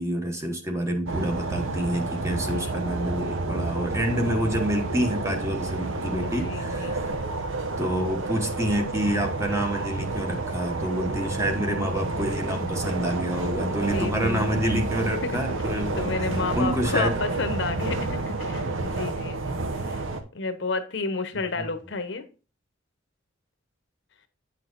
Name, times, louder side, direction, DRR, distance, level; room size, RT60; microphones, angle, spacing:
voice 1, 0.0-7.1 7.8-17.1 21.6-21.7, equal, 15° right, 1.0 m, -28 dB
sound 1, 1.1-20.2, right 2 dB, 90° right, 0.8 m, -30 dB
voice 2, 2.4-2.8 6.2-7.0 13.9-14.5 15.2-15.4 15.9-20.0 20.3-22.2, left 4 dB, 65° left, 0.9 m, -31 dB
8.9 x 5.8 x 2.5 m
head